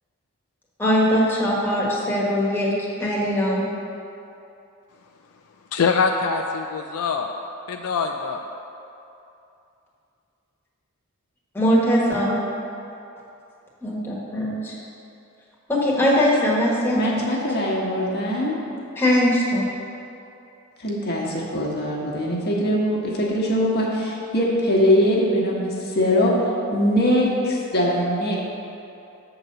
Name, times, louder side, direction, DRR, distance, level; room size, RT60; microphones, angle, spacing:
voice 1, 0.8-3.6 11.5-12.4 13.8-14.7 15.7-17.0 19.0-19.6, equal, 10° left, -6 dB, 1.3 m, -21 dB
voice 2, 5.7-7.3 7.7-8.4, left 5 dB, 75° left, 4 dB, 0.4 m, -23 dB
voice 3, 16.9-18.6 20.8-26.3 26.7-28.4, equal, 50° left, -3 dB, 1.3 m, -22 dB
7.6 x 4.0 x 6.6 m, 2.7 s
head